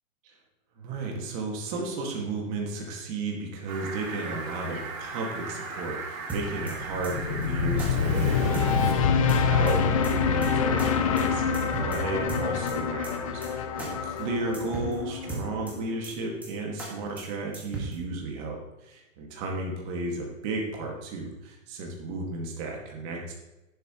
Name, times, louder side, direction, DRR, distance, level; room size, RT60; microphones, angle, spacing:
voice 1, 0.8-23.3, right 2 dB, 25° right, 0 dB, 2.0 m, -34 dB
Fowl, 3.7-8.9, right 3 dB, 85° right, 3.2 m, -36 dB
sound 1, 6.3-6.7 7.0-7.1 7.4-7.5 7.8-7.9 8.2-8.3 8.5-8.9 9.3-9.7 10.0-10.1 10.4-10.5 10.8-10.9 11.2-11.3 11.5-12.0 12.3-12.7 13.0-13.1 13.4-13.5 13.8-13.9 14.2-14.3 14.5-14.9 15.3-15.7 16.0-16.1 16.4-16.5 16.8-16.9 17.2-17.3 17.5-17.9, right 2 dB, 5° right, 1.7 m, -35 dB
sound 2, 6.8-15.9, left 6 dB, 25° left, 0.5 m, -26 dB
11.5 x 11.0 x 3.1 m, 1.0 s
hypercardioid pair, 160°, 40 cm